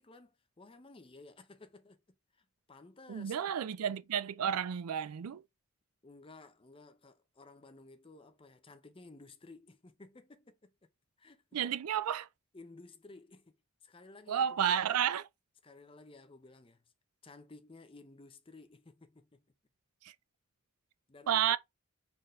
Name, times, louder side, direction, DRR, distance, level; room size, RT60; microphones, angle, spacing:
voice 1, 0.0-2.0 2.3-3.4 6.0-10.9 11.2-11.4 12.5-15.0 15.6-16.8 17.2-19.4 21.1-21.4, left 3 dB, 25° left, 0.6 m, -55 dB
voice 2, 3.1-5.4 11.5-12.3 14.3-15.3 20.0-20.1 21.3-21.6, right 9 dB, 90° right, 0.4 m, -31 dB
4.3 x 3.9 x 3.1 m
head